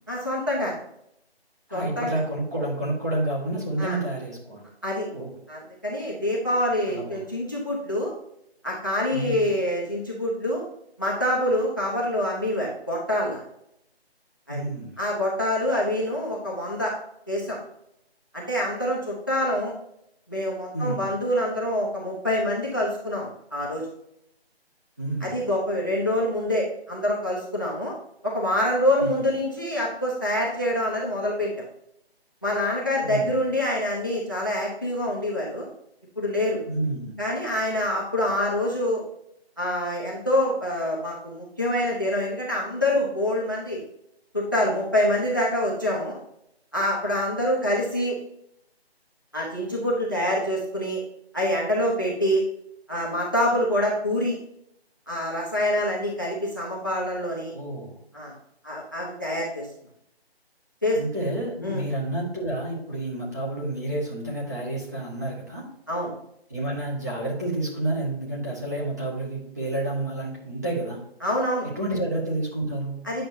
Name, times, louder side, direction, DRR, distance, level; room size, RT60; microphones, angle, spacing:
voice 1, 0.1-0.8 1.7-2.1 3.8-4.0 4.8-5.1 5.5-8.1 8.6-10.6 11.0-13.4 14.5-14.6 15.0-16.9 17.3-17.6 18.3-19.7 20.3-23.8 25.2-27.9 28.2-31.5 32.4-35.7 36.2-36.6 37.2-39.0 39.6-43.8 44.3-46.2 46.7-48.1 49.3-51.0 51.3-52.4 52.9-54.4 55.1-57.5 58.1-58.3 58.6-59.7 60.8-61.0 61.6-61.9 65.9-66.1 71.2-71.7 73.0-73.3, left 1 dB, 20° left, -3 dB, 0.7 m, -26 dB
voice 2, 1.7-4.6 5.1-5.3 6.9-7.2 9.1-9.5 14.5-14.9 20.7-21.1 25.0-25.3 29.0-29.2 33.0-33.4 36.7-37.2 57.5-58.0 60.9-65.7 66.5-71.0 71.6-73.1, right 1 dB, 15° right, -4 dB, 0.9 m, -29 dB
8.9 x 5.9 x 2.6 m, 0.79 s
figure-of-eight pair, 170°, 32 cm